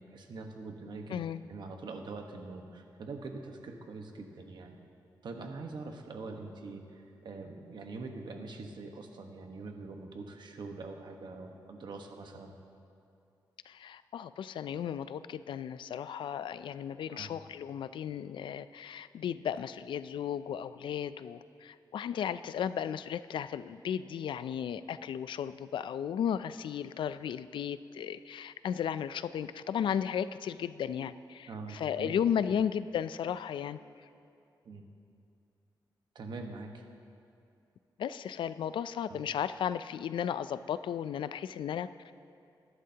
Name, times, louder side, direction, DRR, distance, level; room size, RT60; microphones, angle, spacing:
voice 1, 0.0-1.2 1.5-4.8 5.2-12.5 17.1-17.3 31.5-32.1 34.6-34.8 36.1-36.8 39.1-39.2, right 3 dB, 70° right, 3 dB, 1.2 m, -43 dB
voice 2, 1.1-1.4 13.7-33.8 38.0-42.1, left 8 dB, 90° left, 14 dB, 0.4 m, -35 dB
21.0 x 11.5 x 2.8 m, 2.6 s
wide cardioid pair, 135°, 8 cm